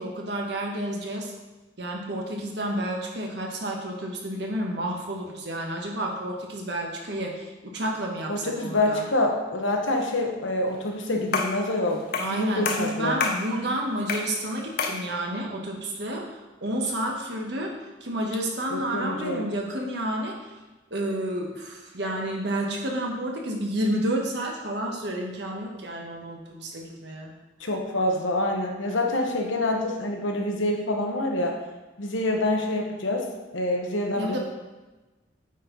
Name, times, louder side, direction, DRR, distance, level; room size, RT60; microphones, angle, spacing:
voice 1, 0.0-1.3 1.8-9.1 12.2-17.7 18.0-20.5 20.9-27.3 34.2-34.4, right 1 dB, 60° right, 0 dB, 1.2 m, -30 dB
voice 2, 8.3-12.0 12.3-13.2 18.7-19.5 27.6-31.6 32.0-33.3 33.5-34.4, left 1 dB, 75° left, 1 dB, 1.1 m, -26 dB
sound 1, 11.3-11.6 12.1-12.4 12.7-13.5 14.1-14.3 14.8-15.0, left 4 dB, 50° left, 0.7 m, -27 dB
8.9 x 4.5 x 3.9 m, 1.1 s
head